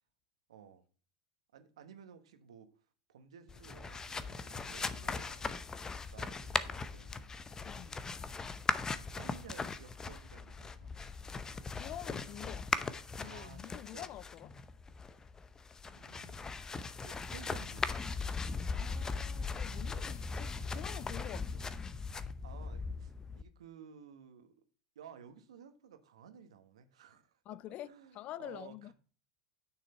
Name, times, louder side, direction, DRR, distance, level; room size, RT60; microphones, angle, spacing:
voice 1, 0.5-0.8 1.5-2.7 3.1-5.6 6.1-7.5 9.1-10.9 13.2-14.1 15.9-16.5 17.0-17.9 22.4-24.5 24.9-27.4 27.7-28.9, right 8 dB, 75° right, 1.3 m, -55 dB
sound 1, 3.5-23.4, left 4 dB, 20° left, 0.8 m, -39 dB
voice 2, 7.6-8.0 11.7-14.5 18.7-21.7 27.5-28.9, left 13 dB, 45° left, 0.3 m, -47 dB
9.9 x 6.4 x 4.3 m
hypercardioid pair, 85°, 3 cm